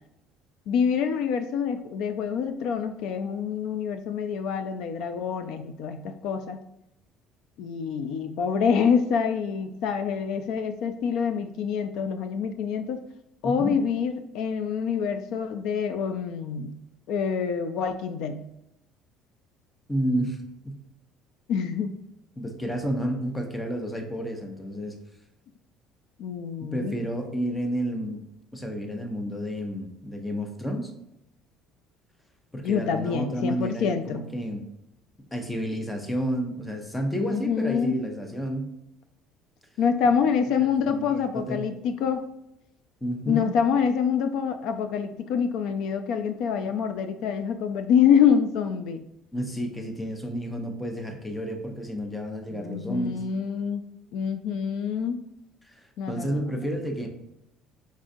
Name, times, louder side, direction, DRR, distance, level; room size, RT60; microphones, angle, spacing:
voice 1, 0.7-6.6 7.6-13.0 13.4-16.7 17.1-18.4 21.5-22.0 26.2-27.0 32.6-34.3 37.2-38.0 39.8-42.3 43.3-49.0 52.5-53.8 54.1-55.2 56.0-56.7, left 7 dB, 60° left, 9 dB, 0.3 m, -26 dB
voice 2, 13.4-13.7 19.9-20.4 22.4-25.0 26.7-28.2 28.5-30.9 32.5-34.6 35.3-38.7 40.9-41.7 43.0-43.5 49.3-53.2 55.6-55.8 56.1-57.1, equal, 5° left, 4 dB, 0.5 m, -30 dB
5.1 x 3.8 x 2.5 m, 0.84 s
cardioid pair, 165°, 0 cm